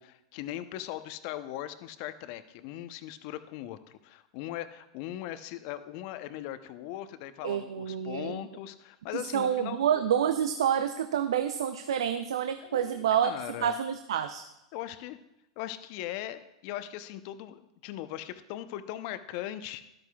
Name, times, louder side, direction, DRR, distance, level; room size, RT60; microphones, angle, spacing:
voice 1, 0.0-9.8 12.6-13.8 14.7-15.2 15.6-19.8, left 13 dB, 55° left, 11 dB, 0.7 m, -39 dB
voice 2, 7.4-8.4 9.1-13.3 13.6-14.4, right 9 dB, 75° right, 9 dB, 0.5 m, -28 dB
12.5 x 12.5 x 2.3 m, 0.90 s
hypercardioid pair, 95°, 3 cm